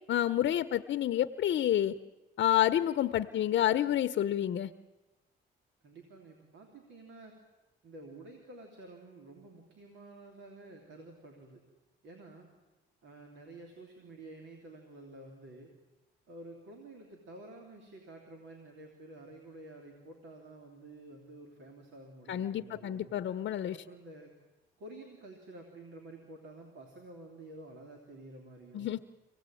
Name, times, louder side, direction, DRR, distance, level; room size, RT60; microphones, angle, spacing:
voice 1, 0.1-1.9 2.4-4.7 22.3-23.8 28.7-29.0, left 11 dB, 65° left, 11 dB, 0.8 m, -29 dB
voice 2, 5.8-7.3 7.8-11.6 12.0-12.5 13.0-15.7 16.3-23.1 23.7-24.3 24.8-28.9, right 2 dB, 75° right, 2 dB, 3.4 m, -50 dB
25.0 x 17.5 x 9.1 m, 1.1 s
cardioid pair, 90°, 20 cm